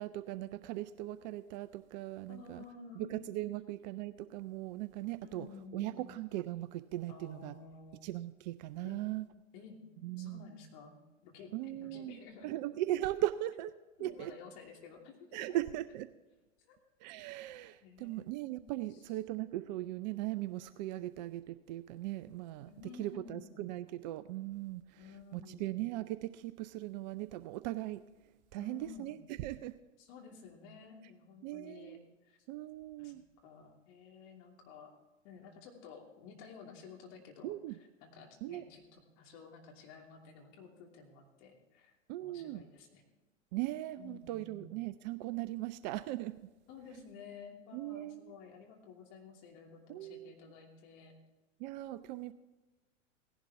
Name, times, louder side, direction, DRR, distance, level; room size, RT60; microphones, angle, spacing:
voice 1, 0.0-2.6 3.0-5.5 5.7-7.6 8.0-9.2 10.0-10.4 11.5-12.2 12.4-13.7 14.0-14.3 15.3-16.1 17.0-22.7 23.0-25.0 25.3-28.0 28.5-29.7 31.4-32.0 32.5-33.2 37.4-37.7 38.4-38.6 42.1-42.6 43.5-46.5 47.7-48.3 49.9-50.3 51.6-52.3, right 15 dB, 40° right, 14 dB, 0.4 m, -39 dB
voice 2, 2.3-3.3 5.2-6.2 7.1-8.1 8.8-9.0 9.5-9.8 10.2-12.6 12.9-13.0 14.0-15.6 16.6-16.8 17.8-19.1 22.7-23.7 25.0-25.9 28.6-29.2 30.0-32.4 33.0-33.1 33.4-34.9 35.2-43.0 44.0-44.8 46.7-51.1, left 5 dB, 45° left, 1 dB, 2.8 m, -53 dB
17.0 x 11.0 x 3.6 m, 1.1 s
figure-of-eight pair, 95°, 37 cm